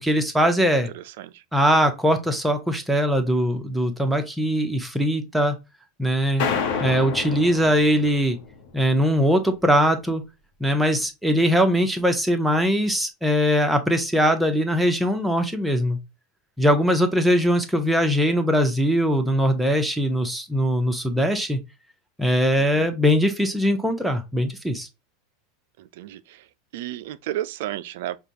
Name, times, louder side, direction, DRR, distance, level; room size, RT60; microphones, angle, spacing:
voice 1, 0.0-0.9 1.5-5.6 6.0-6.5 6.8-8.4 8.7-10.2 10.6-16.0 16.6-21.6 22.2-24.9, equal, 5° right, 0.9 m, -21 dB
voice 2, 0.9-1.4 6.7-7.1 22.6-22.9 25.8-26.4 26.7-28.2, right 13 dB, 65° right, 0.3 m, -33 dB
sound 1, 6.4-8.8, left 6 dB, 60° left, 0.9 m, -29 dB
4.9 x 2.3 x 2.7 m
hypercardioid pair, 90°, 0 cm